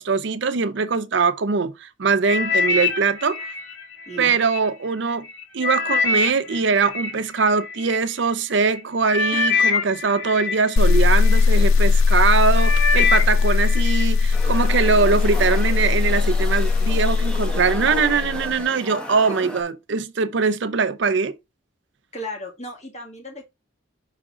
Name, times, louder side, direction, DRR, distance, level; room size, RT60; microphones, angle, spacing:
voice 1, 0.0-3.4 4.2-5.3 5.5-21.4, right 5 dB, 60° right, 0.5 m, -22 dB
sound 1, 2.2-4.6 5.1-8.0 8.7-8.8 9.1-11.4 12.0-12.2 12.5-14.1 14.4-14.9 15.5-15.6, left 4 dB, 65° left, 1.4 m, -24 dB
voice 2, 4.1-4.4 9.3-9.5 19.3-19.5 20.4-20.5 22.1-23.4, equal, 35° left, 2.0 m, -35 dB
sound 2, 10.8-18.6, left 4 dB, 80° left, 0.4 m, -19 dB
sound 3, 14.3-19.6, right 1 dB, 5° left, 0.9 m, -35 dB
5.8 x 3.8 x 4.9 m
head